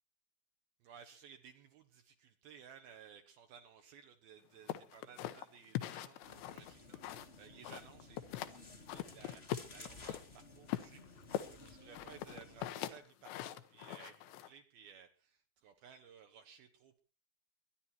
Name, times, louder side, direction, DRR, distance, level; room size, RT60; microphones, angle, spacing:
voice 1, 0.8-17.0, right 7 dB, 70° right, 6 dB, 2.6 m, -58 dB
sound 1, 4.7-7.4 7.6-8.6 8.9-10.2 10.7-14.5, left 12 dB, 85° left, 3.3 m, -42 dB
sound 2, 6.2-12.7, left 3 dB, 35° left, 0.9 m, -56 dB
22.5 x 11.0 x 4.4 m, 0.35 s
omnidirectional pair, 5.1 m